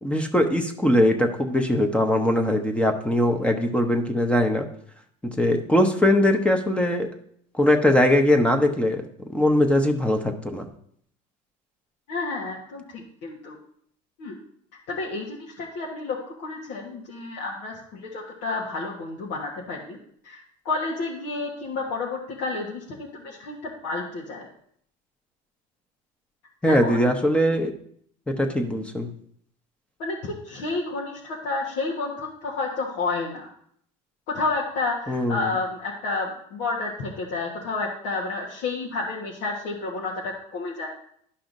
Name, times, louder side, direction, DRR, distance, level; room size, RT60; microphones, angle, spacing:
voice 1, 0.0-4.7 5.2-7.1 7.6-9.0 9.3-10.7 26.6-27.7 28.3-29.1 35.1-35.5, left 1 dB, 5° left, 4 dB, 0.9 m, -21 dB
voice 2, 12.1-13.5 14.2-14.4 14.9-20.0 20.2-24.5 26.6-27.1 30.0-33.5 34.3-40.9, left 3 dB, 75° left, -4 dB, 1.5 m, -30 dB
11.5 x 5.6 x 2.6 m, 0.64 s
supercardioid pair, 110°, 17 cm